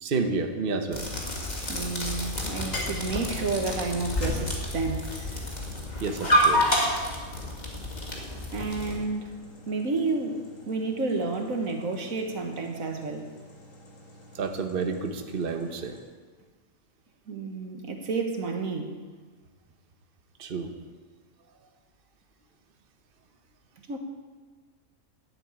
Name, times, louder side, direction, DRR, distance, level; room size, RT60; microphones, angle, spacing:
voice 1, 0.0-1.1 6.0-6.9 14.3-16.0 20.4-20.7, right 4 dB, 45° right, 5 dB, 1.2 m, -30 dB
sound 1, 0.9-9.0, left 1 dB, 30° left, 2.2 m, -29 dB
voice 2, 1.7-5.1 8.5-9.4 9.6-13.3 17.3-19.0 23.9-24.0, right 3 dB, 90° right, 4 dB, 1.8 m, -30 dB
sound 2, 2.7-16.0, left 1 dB, 75° left, 2.7 m, -45 dB
11.5 x 8.0 x 8.8 m, 1.4 s
omnidirectional pair, 1.4 m